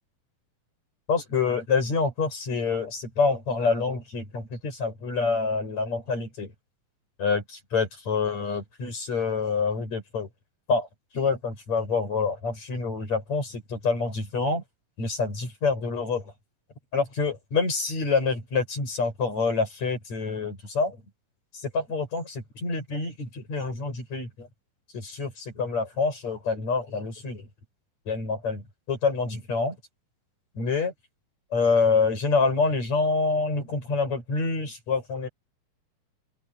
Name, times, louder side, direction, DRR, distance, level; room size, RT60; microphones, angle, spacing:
voice 1, 1.1-6.5 7.2-10.3 10.7-10.9 11.1-14.6 15.0-16.3 16.9-21.0 21.5-24.5 24.9-27.5 28.1-29.8 30.6-30.9 31.5-35.3, left 4 dB, 45° left, 8.8 m, -27 dB
open air
omnidirectional pair, 4.3 m